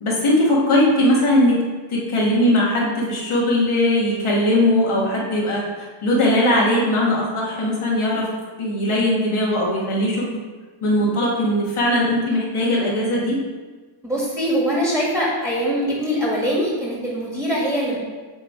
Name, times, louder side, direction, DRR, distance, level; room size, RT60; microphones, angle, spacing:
voice 1, 0.0-1.6 1.9-8.3 8.6-10.2 10.8-13.4, left 1 dB, 90° left, -4 dB, 1.5 m, -19 dB
voice 2, 14.0-18.0, equal, 5° right, -5 dB, 1.8 m, -22 dB
7.9 x 3.2 x 4.6 m, 1.4 s
wide cardioid pair, 100°, 48 cm